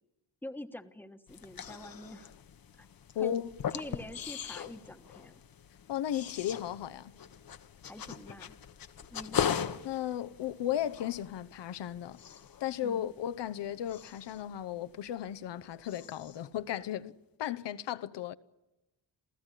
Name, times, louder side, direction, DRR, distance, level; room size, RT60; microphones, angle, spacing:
voice 1, 0.4-2.3 2.8-2.9 3.2-3.4 3.7-5.4 7.8-8.6 9.1-9.5 12.8-13.1, left 1 dB, 5° left, 1.3 m, -45 dB
sound 1, 1.3-15.6 15.9-16.5, left 8 dB, 50° left, 1.2 m, -40 dB
voice 2, 3.1-3.5 5.9-7.2 9.8-12.2 12.6-18.3, left 11 dB, 70° left, 1.0 m, -35 dB
28.0 x 15.0 x 10.0 m
cardioid pair, 110°, 43 cm